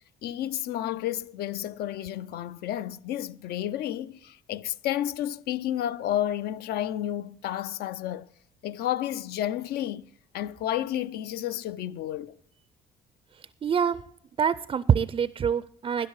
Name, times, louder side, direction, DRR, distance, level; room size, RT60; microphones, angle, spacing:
voice 1, 0.2-8.3 8.6-12.3, left 12 dB, 70° left, 0.5 m, -31 dB
voice 2, 13.6-14.0 14.4-16.1, right 7 dB, 30° right, 0.4 m, -25 dB
13.0 x 10.5 x 4.7 m
cardioid pair, 110°, 17 cm